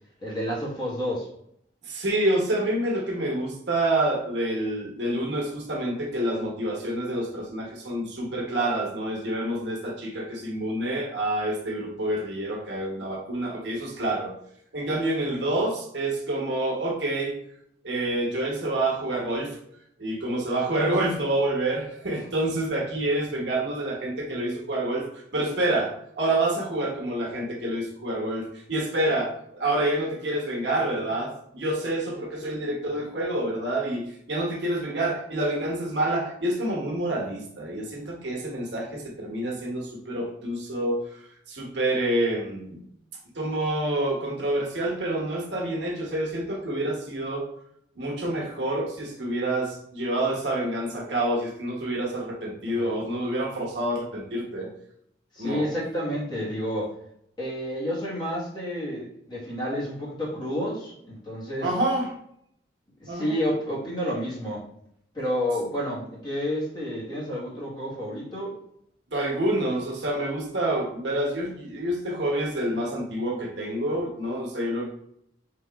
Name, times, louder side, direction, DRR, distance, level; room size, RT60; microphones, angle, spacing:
voice 1, 0.2-1.3 32.9-33.0 52.7-52.9 55.3-56.9 57.4-61.7 63.0-64.6 65.1-68.6, equal, 25° left, -7 dB, 1.6 m, -30 dB
voice 2, 1.8-14.3 14.7-17.4 17.8-19.6 20.0-41.2 41.5-42.8 43.3-47.5 48.0-54.7 55.4-55.7 61.6-62.1 63.1-63.3 69.1-74.9, right 1 dB, 70° right, -1 dB, 1.0 m, -28 dB
3.8 x 2.9 x 3.4 m, 0.71 s
head